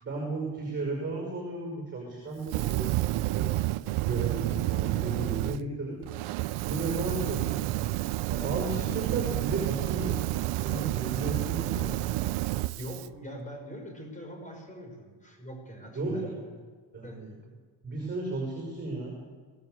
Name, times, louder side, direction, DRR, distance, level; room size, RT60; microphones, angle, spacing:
voice 1, 0.0-3.6 4.0-6.0 6.6-7.9 8.3-10.3 10.6-12.3 15.9-16.3 16.9-17.3 17.8-19.1, right 2 dB, 20° right, 0 dB, 5.8 m, -34 dB
Fire, 2.4-5.6 6.0-13.1, right 17 dB, 80° right, 0.7 m, -30 dB
voice 2, 12.8-16.3 17.0-17.2, right 1 dB, 15° left, 3 dB, 5.2 m, -42 dB
23.0 x 17.5 x 8.0 m, 1.5 s
cardioid pair, 160°, 49 cm